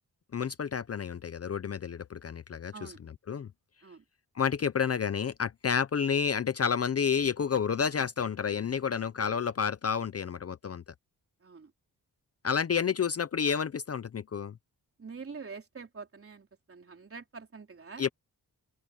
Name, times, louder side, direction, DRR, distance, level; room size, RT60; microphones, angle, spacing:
voice 1, 0.3-2.9 3.3-3.5 4.4-10.8 12.4-14.5 18.0-18.1, left 7 dB, 40° left, 0.6 m, -30 dB
voice 2, 15.0-18.0, right 5 dB, 35° right, 3.7 m, -45 dB
open air
wide cardioid pair, 145°, 37 cm